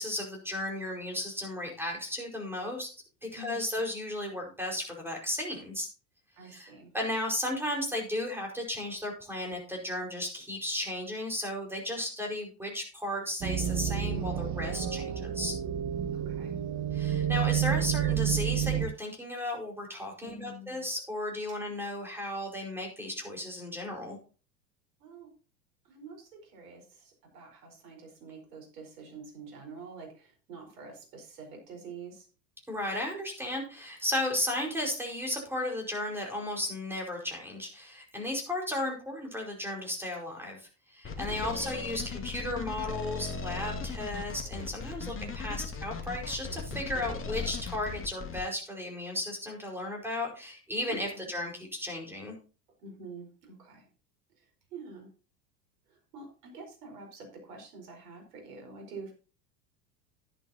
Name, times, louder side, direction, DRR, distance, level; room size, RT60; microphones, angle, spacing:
voice 1, 0.0-2.9 3.2-5.9 6.5-6.7 6.9-15.5 16.9-24.2 32.7-40.6 40.9-52.3, left 1 dB, 5° right, 1 dB, 5.0 m, -34 dB
voice 2, 6.4-6.9 16.1-16.6 20.2-20.8 25.0-25.3 25.8-32.3 41.3-41.7 45.0-45.3 50.8-51.3 52.8-53.9 54.4-55.1 55.9-59.1, right 3 dB, 70° right, 3 dB, 4.9 m, -47 dB
sound 1, 13.4-18.9, right 10 dB, 35° right, 1.5 m, -30 dB
sound 2, 41.0-48.4, left 4 dB, 25° left, 2.4 m, -37 dB
11.5 x 10.5 x 2.9 m, 0.35 s
hypercardioid pair, 85°, 50 cm